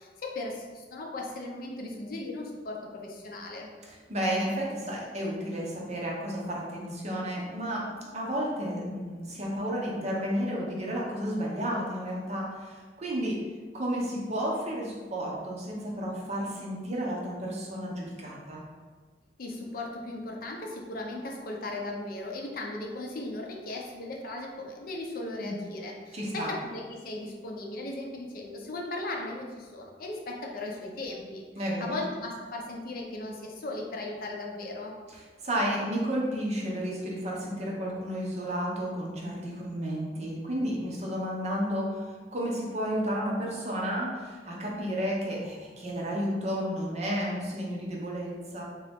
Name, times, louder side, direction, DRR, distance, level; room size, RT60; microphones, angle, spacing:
voice 1, 0.0-3.7 19.4-35.0, left 2 dB, 55° left, 0 dB, 0.6 m, -37 dB
voice 2, 3.9-13.4 13.7-18.6 25.4-25.6 26.1-26.5 31.6-32.0 35.4-42.0 42.3-48.6, equal, 40° right, -3 dB, 0.8 m, -32 dB
3.7 x 2.8 x 3.5 m, 1.5 s
head